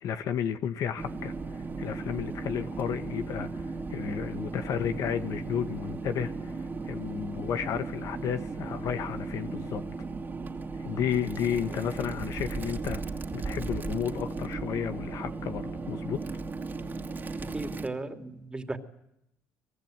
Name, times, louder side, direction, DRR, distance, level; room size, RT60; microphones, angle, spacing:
voice 1, 0.0-9.8 10.8-13.0 13.3-16.2, left 8 dB, 65° left, 10 dB, 1.6 m, -32 dB
sound 1, 1.0-17.9, right 3 dB, 30° right, 2.5 m, -36 dB
voice 2, 17.5-18.8, right 2 dB, 15° right, 7 dB, 2.9 m, -36 dB
24.0 x 21.0 x 9.2 m, 0.80 s
supercardioid pair, 90°, 6 cm